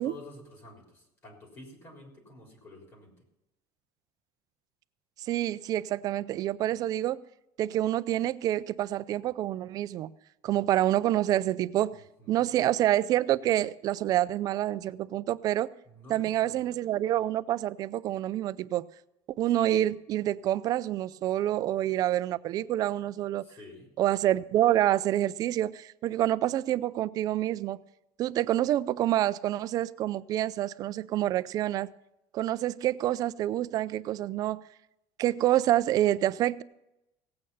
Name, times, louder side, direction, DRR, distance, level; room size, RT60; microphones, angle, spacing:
voice 1, 0.0-3.1 12.2-12.5 15.9-16.7 23.4-23.9, left 2 dB, 25° left, 3.8 m, -49 dB
voice 2, 5.3-7.2 7.6-10.1 10.4-12.0 12.3-15.7 16.1-18.8 19.4-23.5 24.0-27.8 28.2-31.9 32.3-34.6 35.2-36.6, right 13 dB, 40° right, 0.4 m, -27 dB
17.5 x 8.7 x 5.6 m
cardioid pair, 165°, 10 cm